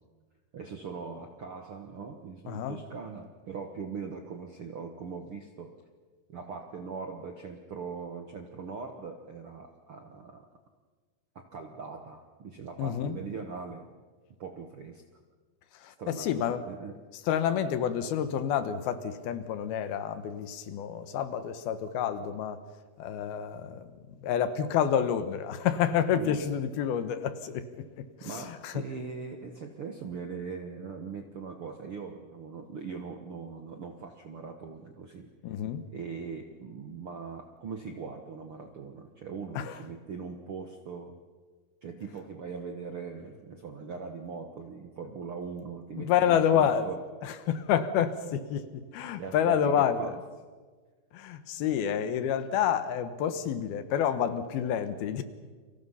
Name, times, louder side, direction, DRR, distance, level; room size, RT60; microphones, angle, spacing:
voice 1, 0.5-5.8 6.3-10.4 11.3-13.9 14.4-15.0 16.0-16.9 26.1-26.3 28.2-35.3 35.9-41.2 41.8-47.0 49.2-50.2, right 5 dB, 60° right, 4 dB, 1.4 m, -40 dB
voice 2, 2.5-2.8 12.8-13.2 15.8-16.6 17.3-22.6 23.0-23.9 24.2-27.9 28.5-28.7 35.4-35.8 39.6-39.7 46.0-46.9 47.2-50.1 51.1-55.2, left 9 dB, 75° left, 11 dB, 3.0 m, -28 dB
30.0 x 24.5 x 5.7 m, 1.4 s
omnidirectional pair, 4.5 m